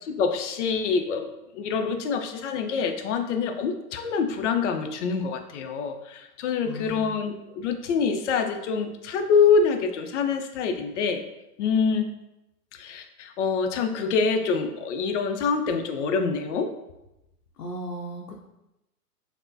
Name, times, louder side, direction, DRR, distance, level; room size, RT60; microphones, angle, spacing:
voice 1, 0.0-1.3 1.5-11.2 11.6-12.1 12.7-16.7, left 5 dB, 50° left, 6 dB, 0.5 m, -25 dB
voice 2, 6.6-7.2 17.6-18.5, equal, 90° left, -2 dB, 0.6 m, -36 dB
5.6 x 2.1 x 2.6 m, 0.92 s
hypercardioid pair, 115°, 47 cm